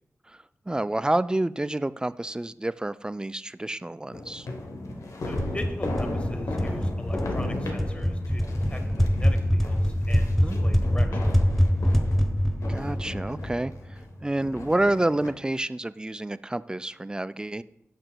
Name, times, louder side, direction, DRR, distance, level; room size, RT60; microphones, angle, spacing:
voice 1, 0.7-4.5 10.4-10.6 12.7-13.7 14.2-17.6, right 1 dB, 15° right, 15 dB, 0.3 m, -28 dB
sound 1, 4.1-15.3, left 2 dB, 70° left, 1.0 m, -36 dB
voice 2, 5.2-11.3, left 1 dB, 20° left, 6 dB, 1.1 m, -40 dB
sound 2, 5.4-14.0, equal, 5° left, 0.8 m, -25 dB
12.0 x 6.0 x 2.3 m, 0.75 s
cardioid pair, 45°, 5 cm